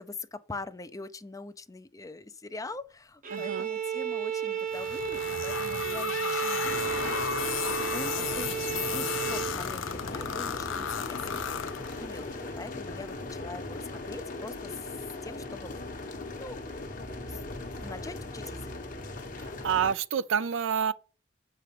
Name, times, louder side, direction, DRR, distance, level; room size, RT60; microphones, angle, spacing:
voice 1, 0.0-8.6 8.9-11.4 11.7-14.8 15.2-15.7 16.3-16.7 17.1-17.4 17.7-18.7, left 3 dB, 15° left, 0.5 m, -43 dB
Bowed string instrument, 3.2-9.6, right 8 dB, 40° right, 1.0 m, -33 dB
voice 2, 3.3-3.7 19.4-20.9, right 7 dB, 70° right, 0.5 m, -28 dB
sound 1, 4.7-12.3, left 8 dB, 70° left, 0.6 m, -34 dB
sound 2, 6.6-20.0, left 2 dB, 40° left, 1.2 m, -39 dB
7.8 x 4.9 x 5.8 m
head